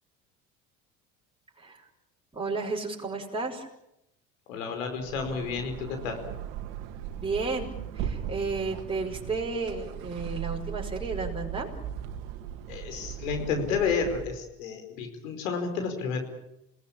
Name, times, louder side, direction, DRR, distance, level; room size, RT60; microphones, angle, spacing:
voice 1, 2.3-3.7 7.2-7.7 7.9-11.7, right 3 dB, 15° right, -3 dB, 6.2 m, -32 dB
voice 2, 4.5-6.2 12.7-16.2, left 5 dB, 80° left, 6 dB, 5.2 m, -31 dB
sound 1, 4.9-14.5, right 9 dB, 70° right, 2.1 m, -38 dB
27.5 x 18.5 x 8.7 m, 0.85 s
hypercardioid pair, 65°, 39 cm